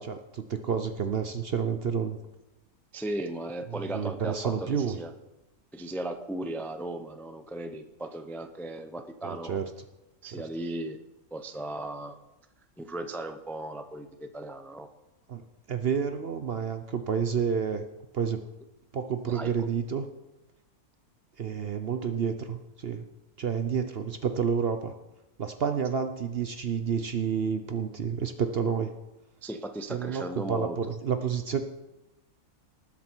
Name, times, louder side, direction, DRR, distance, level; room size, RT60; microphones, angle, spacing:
voice 1, 0.0-2.2 3.7-5.0 9.2-9.7 15.3-15.4 15.7-17.9 18.1-18.4 18.9-20.1 21.4-23.1 23.4-24.9 25.4-28.9 29.9-31.6, right 7 dB, 55° right, 8 dB, 0.7 m, -29 dB
voice 2, 2.9-5.1 5.7-9.6 10.2-11.0 11.3-12.2 12.8-14.9 19.3-19.5 29.4-30.9, right 1 dB, ahead, 7 dB, 0.4 m, -36 dB
19.0 x 7.3 x 4.5 m, 1.0 s
omnidirectional pair, 1.6 m